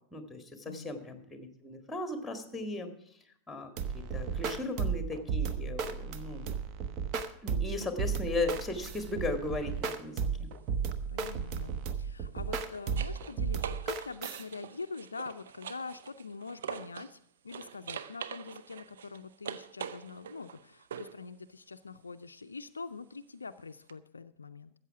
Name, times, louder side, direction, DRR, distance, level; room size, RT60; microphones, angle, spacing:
voice 1, 0.1-2.9 3.5-6.5 7.4-10.5, left 2 dB, 5° left, 8 dB, 1.9 m, -37 dB
sound 1, 3.8-14.4, right 6 dB, 40° right, 1.0 m, -34 dB
sound 2, 9.7-9.9 12.2-17.2 17.5-21.2 23.9-24.0, right 8 dB, 65° right, 0.6 m, -44 dB
voice 2, 11.1-17.2 17.4-24.7, left 4 dB, 75° left, 10 dB, 0.4 m, -44 dB
13.5 x 8.1 x 5.8 m, 0.70 s
figure-of-eight pair, 90°, 0 cm